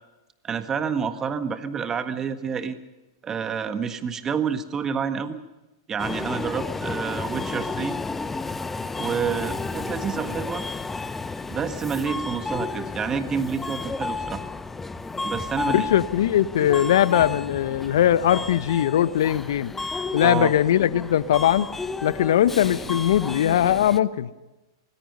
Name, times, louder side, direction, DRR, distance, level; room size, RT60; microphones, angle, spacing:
voice 1, 0.4-2.8 3.2-5.4 5.9-8.0 9.0-10.7 11.5-14.4 15.2-15.9 20.2-20.5, right 6 dB, 20° right, 9 dB, 1.6 m, -28 dB
Subway metro underground, 6.0-24.0, left 3 dB, 10° left, 0.9 m, -32 dB
voice 2, 15.7-19.7 20.1-21.7 22.0-24.3, left 11 dB, 70° left, 16 dB, 1.0 m, -20 dB
24.5 x 20.0 x 5.3 m, 1.0 s
hypercardioid pair, 105°, 2 cm